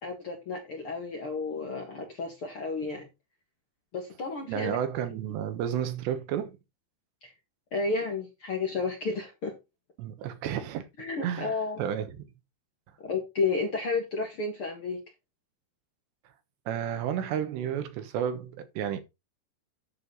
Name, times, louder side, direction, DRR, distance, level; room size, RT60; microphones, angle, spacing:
voice 1, 0.0-3.1 3.9-4.8 7.2-7.3 7.7-9.5 11.0-11.8 13.0-15.0, left 4 dB, 50° left, 1.8 m, -32 dB
voice 2, 4.5-6.6 10.0-10.9 11.2-11.5 11.8-12.1 16.7-19.0, right 9 dB, 85° right, 3.4 m, -31 dB
10.5 x 6.4 x 3.9 m
omnidirectional pair, 4.9 m